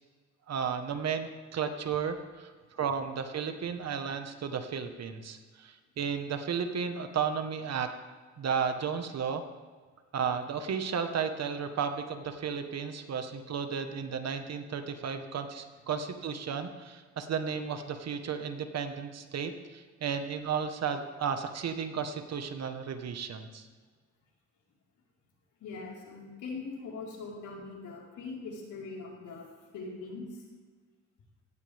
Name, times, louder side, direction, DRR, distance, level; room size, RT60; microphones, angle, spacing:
voice 1, 0.5-7.9 8.4-9.4 10.1-23.7, right 6 dB, 60° right, 7 dB, 1.5 m, -33 dB
voice 2, 25.6-29.5 29.7-30.4, left 4 dB, 80° left, -3 dB, 4.7 m, -41 dB
17.0 x 15.0 x 3.6 m, 1.5 s
cardioid pair, 90°, 30 cm